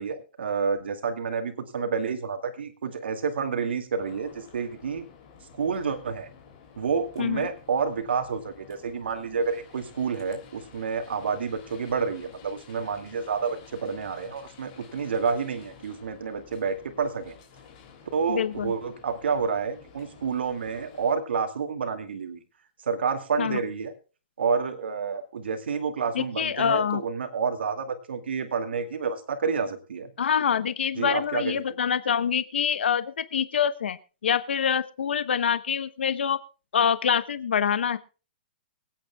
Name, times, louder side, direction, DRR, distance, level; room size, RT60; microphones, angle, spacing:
voice 1, 0.0-5.0 5.5-6.3 6.8-17.4 18.1-22.4 22.8-23.9 24.4-30.1 30.9-31.6, right 5 dB, 85° right, 6 dB, 2.3 m, -29 dB
sound 1, 4.0-21.1, left 6 dB, 30° left, 3.0 m, -52 dB
voice 2, 18.3-18.7 23.4-23.6 26.1-27.0 30.2-34.0 34.2-36.4 36.7-38.0, left 8 dB, 90° left, 14 dB, 0.9 m, -25 dB
25.0 x 9.2 x 2.3 m, 0.34 s
hypercardioid pair, 180°, 6 cm